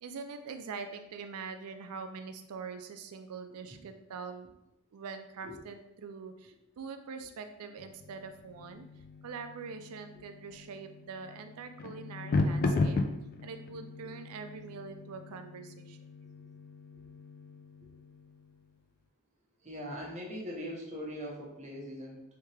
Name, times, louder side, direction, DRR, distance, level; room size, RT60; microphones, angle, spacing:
voice 1, 0.0-4.5 4.9-8.9 9.2-13.0 13.4-16.0, right 5 dB, 75° right, 7 dB, 0.4 m, -43 dB
sound 1, 7.8-18.6, left 3 dB, 40° left, 0.3 m, -36 dB
voice 2, 19.6-22.2, equal, 30° right, -3 dB, 0.8 m, -41 dB
3.4 x 2.8 x 3.2 m, 0.85 s
head